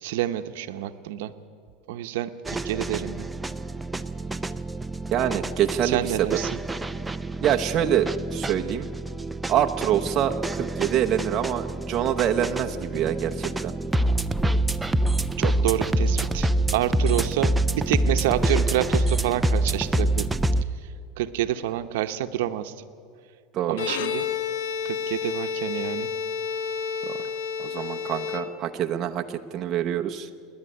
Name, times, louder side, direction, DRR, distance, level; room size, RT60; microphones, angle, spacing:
voice 1, 0.0-1.3 1.9-3.3 5.8-6.5 15.4-20.3 21.2-22.7 23.7-24.3 24.8-26.1, right 13 dB, 80° right, 9 dB, 0.8 m, -28 dB
sound 1, 2.5-20.6, right 1 dB, 5° right, 0.4 m, -26 dB
voice 2, 5.1-6.4 7.4-8.9 9.5-13.7 23.5-23.8 27.0-27.1 27.6-30.3, right 10 dB, 30° right, 4 dB, 0.8 m, -25 dB
Bowed string instrument, 23.7-29.0, left 7 dB, 85° left, 1.0 m, -30 dB
27.5 x 10.5 x 9.9 m, 2.3 s
supercardioid pair, 165°, 0 cm